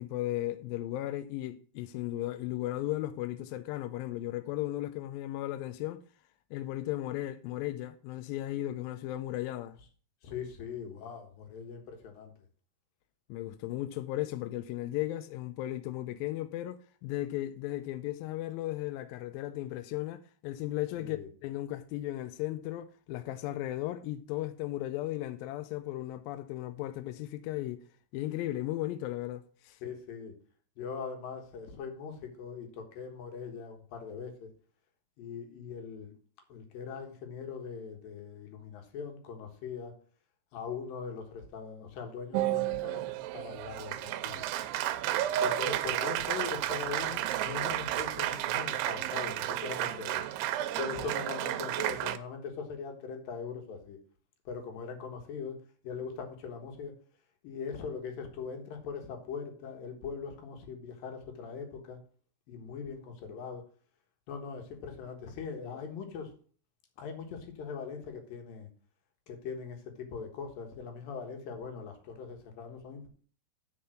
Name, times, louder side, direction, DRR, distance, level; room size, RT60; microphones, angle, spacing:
voice 1, 0.0-6.0 6.5-9.8 13.3-27.8 28.1-29.8 65.6-65.8, left 15 dB, 85° left, 2.1 m, -36 dB
voice 2, 10.2-12.3 21.0-21.3 29.8-30.3 30.8-34.5 35.2-36.1 36.5-39.9 40.5-44.5 45.4-50.2 50.7-54.0 54.5-55.6 55.8-57.0 57.4-62.0 62.5-63.6 64.3-66.3 67.0-68.7 69.3-73.1, left 6 dB, 65° left, 3.0 m, -41 dB
Applause, 42.3-52.2, right 13 dB, 85° right, 2.6 m, -32 dB
8.7 x 5.5 x 6.3 m
omnidirectional pair, 4.7 m